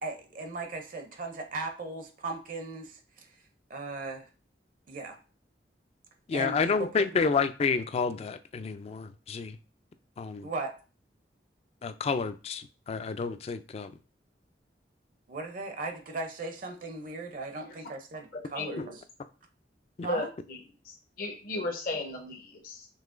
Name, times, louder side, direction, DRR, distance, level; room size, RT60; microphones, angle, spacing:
voice 1, 0.0-3.3 3.7-4.3 4.9-5.2 6.3-7.2 10.4-10.7 15.3-19.0 20.0-20.3, right 3 dB, 50° right, 5 dB, 0.5 m, -37 dB
voice 2, 6.3-9.6 10.2-10.5 11.8-13.9 18.8-18.9 20.0-20.1, left 5 dB, 35° left, 11 dB, 0.3 m, -29 dB
voice 3, 18.3-18.9 20.1-20.6 20.8-22.9, left 2 dB, 55° left, 1 dB, 0.7 m, -35 dB
5.5 x 3.0 x 2.5 m, 0.35 s
head